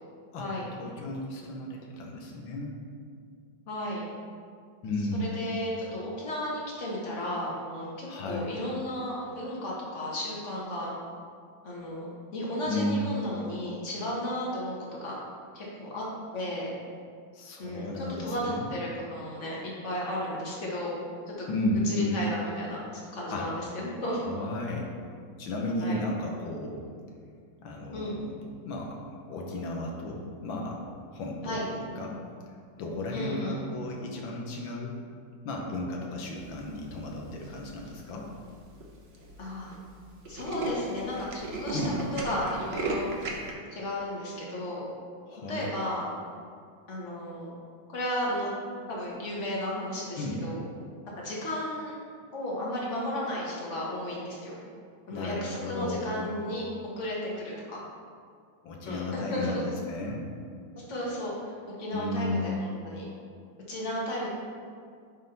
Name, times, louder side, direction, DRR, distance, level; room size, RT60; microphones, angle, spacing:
voice 1, 0.8-2.7 4.8-5.4 8.1-8.5 12.7-13.2 17.3-18.7 21.5-22.2 23.3-23.5 24.2-24.9 25.4-26.8 27.6-28.4 28.6-29.0 29.3-30.8 31.1-32.2 32.8-34.9 35.5-38.3 41.7-41.9 45.2-45.7 50.2-50.4 55.1-56.2 58.6-60.3 61.9-62.6, left 2 dB, 75° left, -1 dB, 1.7 m, -33 dB
voice 2, 3.7-4.0 5.1-10.9 11.6-14.8 15.0-15.2 15.5-16.0 16.3-16.7 17.6-21.0 21.2-21.5 21.8-24.2 25.8-26.0 27.9-28.2 31.4-31.7 33.1-33.6 39.4-39.7 40.3-41.8 42.1-43.1 43.7-44.9 45.5-46.1 46.9-47.5 47.9-48.5 48.9-50.6 51.2-52.0 52.3-54.6 55.1-56.6 57.0-57.8 58.9-59.7 60.9-63.1 63.7-64.3, left 1 dB, 40° left, -5 dB, 1.7 m, -34 dB
Tools, 37.4-37.9 38.5-38.6 38.8-38.9 39.1-39.3 39.6-39.8 40.0-43.5, right 2 dB, 50° right, 0.7 m, -34 dB
9.9 x 3.7 x 3.9 m, 2.2 s
omnidirectional pair, 2.2 m